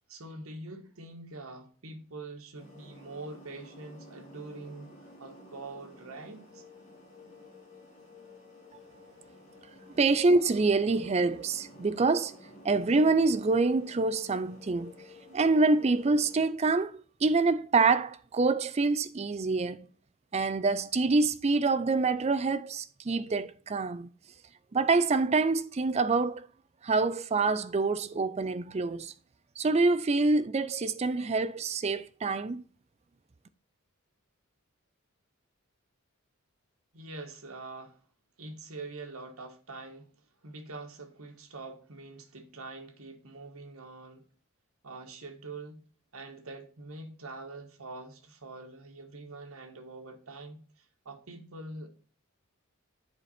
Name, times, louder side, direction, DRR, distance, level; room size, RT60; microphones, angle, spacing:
voice 1, 0.1-4.9 5.2-6.6 36.9-38.0 38.4-44.2 44.8-45.8 46.1-51.9, right 3 dB, 90° right, 1.2 m, -44 dB
sound 1, 2.5-16.4, left 2 dB, 35° left, 2.8 m, -52 dB
voice 2, 10.0-12.4 12.6-14.9 15.3-19.9 20.3-24.1 24.7-26.5 26.8-29.1 29.6-32.6, right 3 dB, 30° right, 0.4 m, -26 dB
7.8 x 4.9 x 4.2 m
head